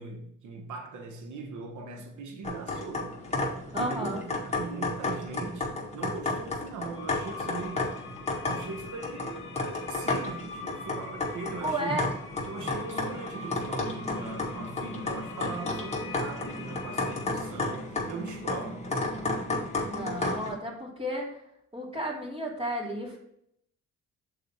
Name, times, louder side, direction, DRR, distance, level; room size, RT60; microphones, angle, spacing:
voice 1, 0.0-3.2 3.7-7.9 8.4-12.1 12.4-18.9, right 4 dB, 75° right, 1.3 m, -40 dB
sound 1, 2.4-20.5, left 2 dB, 20° left, 1.7 m, -33 dB
voice 2, 3.7-4.2 11.6-12.1 19.8-21.4 21.7-23.2, right 1 dB, 20° right, 2.8 m, -32 dB
sound 2, 6.9-17.3, left 5 dB, 45° left, 1.4 m, -45 dB
6.6 x 4.1 x 5.6 m
cardioid pair, 90°, 30 cm